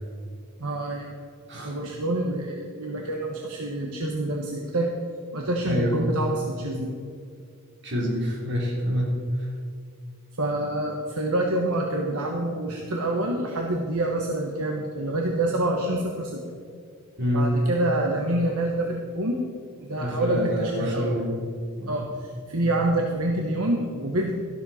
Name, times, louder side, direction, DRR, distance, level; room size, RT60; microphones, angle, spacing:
voice 1, 0.6-1.1 1.5-4.9 5.3-6.9 10.4-16.4 17.3-19.4 19.8-21.1 21.9-24.3, right 1 dB, 70° right, 1 dB, 1.3 m, -27 dB
voice 2, 5.7-6.0 7.8-9.5 17.2-17.5 20.0-21.4 21.8-22.1, equal, 50° right, -3 dB, 3.7 m, -27 dB
13.5 x 12.0 x 4.3 m, 2.3 s
head